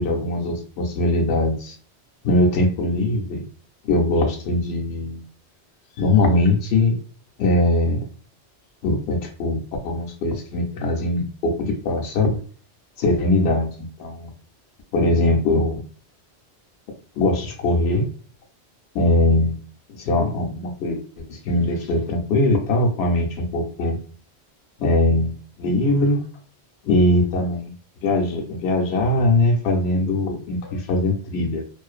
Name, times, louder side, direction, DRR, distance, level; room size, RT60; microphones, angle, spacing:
voice 1, 0.0-1.7 2.2-3.4 3.9-5.2 6.0-7.0 7.4-8.1 8.8-12.4 13.0-14.3 14.9-15.8 17.1-18.1 18.9-19.6 19.9-24.0 24.8-25.3 25.6-26.2 26.8-27.7 28.0-31.6, left 2 dB, 80° left, 1 dB, 0.9 m, -21 dB
2.4 x 2.1 x 2.4 m, 0.41 s
omnidirectional pair, 1.1 m